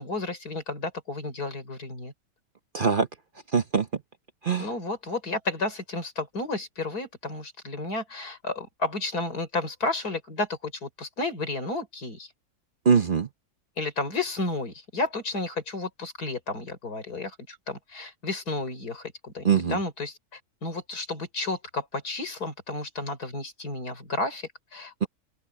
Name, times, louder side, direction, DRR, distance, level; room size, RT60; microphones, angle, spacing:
voice 1, 0.0-2.1 4.6-12.3 13.8-25.1, left 2 dB, 85° left, 5.1 m, -32 dB
voice 2, 2.7-3.1 3.5-3.9 4.4-4.7 12.8-13.3 19.4-19.8, right 6 dB, 40° right, 0.8 m, -22 dB
open air
omnidirectional pair, 1.6 m